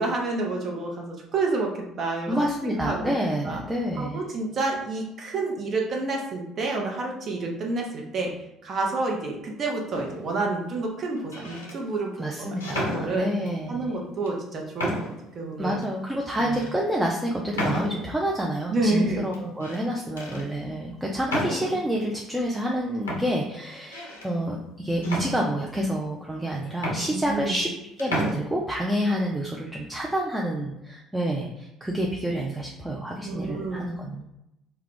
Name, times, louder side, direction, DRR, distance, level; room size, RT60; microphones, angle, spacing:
voice 1, 0.0-3.1 3.4-3.6 4.0-8.3 8.6-13.3 13.7-14.9 15.3-15.8 16.4-16.5 18.7-19.2 27.1-27.6 33.2-33.8, right 3 dB, 45° right, 0 dB, 0.7 m, -29 dB
voice 2, 2.3-4.2 12.2-14.0 15.6-27.7 28.0-34.3, equal, 10° right, -2 dB, 0.4 m, -28 dB
sound 1, 9.9-10.4 11.2-11.8 12.6-13.6 14.3-14.4 14.8-15.3 15.8-15.9 16.5-16.7 17.6-18.2 19.3-19.8 20.2-20.5 21.3-21.9 22.7-22.8 23.1-24.3 25.0-25.9 26.4-26.5 26.8-27.7 28.0-28.4, equal, 85° left, 0.5 m, -32 dB
2.3 x 2.1 x 3.6 m, 0.87 s
figure-of-eight pair, 55°, 0 cm